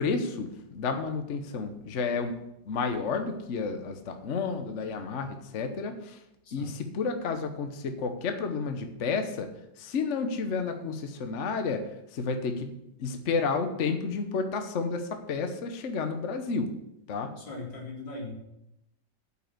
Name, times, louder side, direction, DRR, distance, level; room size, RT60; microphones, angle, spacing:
voice 1, 0.0-2.4 2.7-6.2 6.5-9.5 9.8-11.8 12.1-12.7 13.0-16.7 17.1-17.3, left 4 dB, 50° left, 6 dB, 1.0 m, -31 dB
voice 2, 17.4-18.3, left 2 dB, 75° left, -2 dB, 3.1 m, -39 dB
8.2 x 5.9 x 7.8 m, 0.84 s
omnidirectional pair, 2.0 m